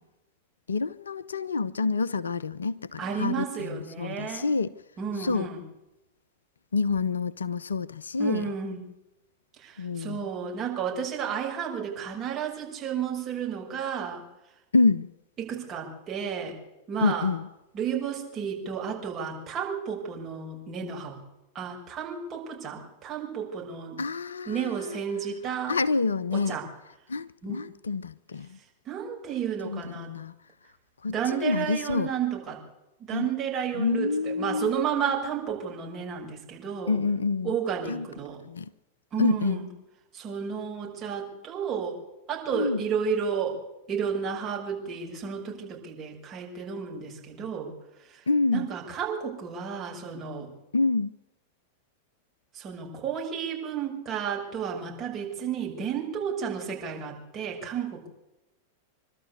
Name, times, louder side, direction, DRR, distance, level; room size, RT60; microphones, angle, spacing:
voice 1, 0.7-4.8 5.2-5.5 6.7-8.5 9.8-10.2 14.7-15.1 17.0-17.5 24.0-25.0 25.7-26.6 27.1-28.6 29.6-30.4 31.0-32.1 33.1-33.3 33.7-34.8 36.9-37.6 37.9-38.1 38.4-38.7 39.2-39.6 42.5-42.8 48.3-48.7 50.7-51.1, left 4 dB, 70° left, 0.7 m, -27 dB
voice 2, 3.0-4.5 5.0-5.6 8.2-8.8 9.6-14.2 15.4-16.5 16.9-17.3 17.7-21.2 21.5-24.0 24.4-25.7 26.3-26.7 27.4-27.6 28.8-30.1 31.1-32.6 33.0-37.0 37.4-38.4 39.1-39.7 40.1-42.0 42.3-43.6 43.9-47.7 48.1-48.2 48.5-50.5 52.5-58.1, right 7 dB, 30° right, 6.7 m, -32 dB
25.5 x 12.5 x 8.4 m
figure-of-eight pair, 90°, 0 cm